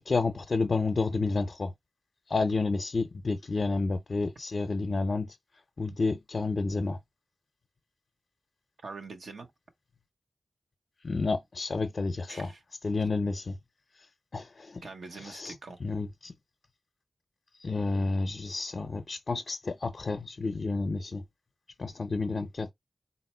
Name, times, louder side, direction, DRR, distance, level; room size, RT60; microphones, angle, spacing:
voice 1, 0.0-1.7 2.3-5.4 5.8-7.0 11.0-12.5 12.8-13.6 14.3-14.8 15.2-15.5 15.8-16.3 17.6-21.2 21.8-22.7, left 3 dB, 60° left, 0.5 m, -30 dB
voice 2, 8.8-9.5 12.3-12.6 13.0-13.1 14.8-15.8, right 3 dB, 85° right, 0.9 m, -44 dB
4.1 x 2.1 x 4.2 m
cardioid pair, 55°, 0 cm